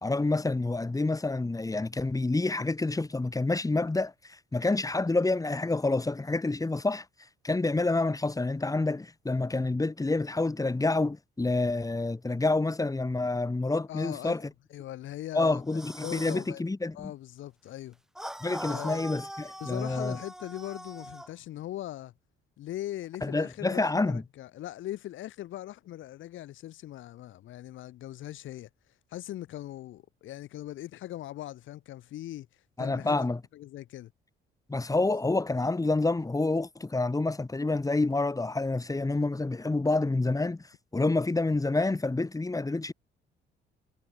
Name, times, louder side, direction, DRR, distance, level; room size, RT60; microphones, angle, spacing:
voice 1, 0.0-4.1 4.5-7.0 7.4-14.4 15.3-17.1 18.4-20.2 23.2-24.2 32.8-33.4 34.7-40.6 40.9-42.9, left 2 dB, 15° left, 2.4 m, -28 dB
voice 2, 13.9-15.6 16.0-16.6 16.9-18.0 18.7-19.1 19.6-22.1 22.6-28.7 29.1-32.5 32.8-34.1, left 14 dB, 80° left, 1.5 m, -40 dB
sound 1, 15.7-16.5 18.2-21.3, equal, ahead, 3.1 m, -41 dB
cardioid pair, 90°, 20 cm